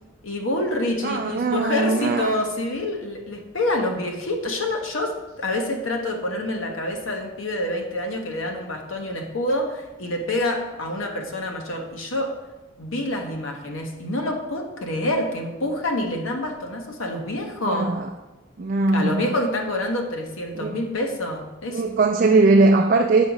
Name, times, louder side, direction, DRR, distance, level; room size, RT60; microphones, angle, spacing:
voice 1, 0.2-12.4 12.8-18.0 18.9-21.8, left 1 dB, 80° left, 2 dB, 1.0 m, -27 dB
voice 2, 1.0-2.3 17.6-18.1 18.6-19.3 20.5-20.8 21.7-23.2, right 3 dB, 45° right, 3 dB, 0.3 m, -20 dB
6.4 x 4.9 x 4.1 m, 1.1 s
head